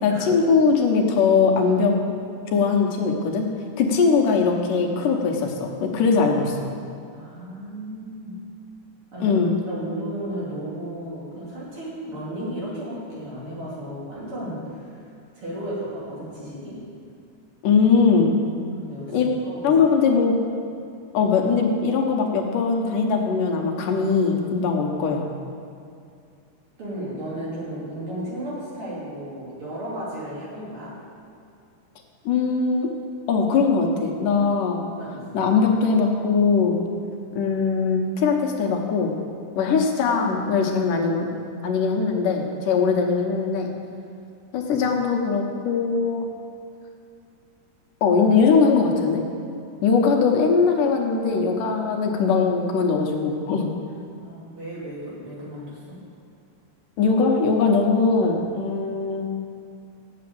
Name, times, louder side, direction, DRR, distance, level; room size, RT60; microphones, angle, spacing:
voice 1, 0.0-2.0 2.5-3.5 3.8-6.7 9.2-9.5 17.6-18.3 19.1-19.3 19.6-20.4 21.1-25.3 32.3-32.9 33.3-34.8 35.3-36.8 37.4-39.2 39.6-41.3 41.6-43.7 44.5-46.3 48.0-49.2 49.8-53.7 57.0-59.3, left 5 dB, 75° left, 2 dB, 2.6 m, -21 dB
voice 2, 7.1-8.4 9.1-9.4 9.7-15.1 15.3-16.8 18.8-19.2 19.4-19.7 26.8-31.0 35.0-35.4 54.1-56.0, right 1 dB, 40° right, -7 dB, 3.4 m, -34 dB
8.3 x 7.6 x 7.7 m, 2.4 s
omnidirectional pair, 3.9 m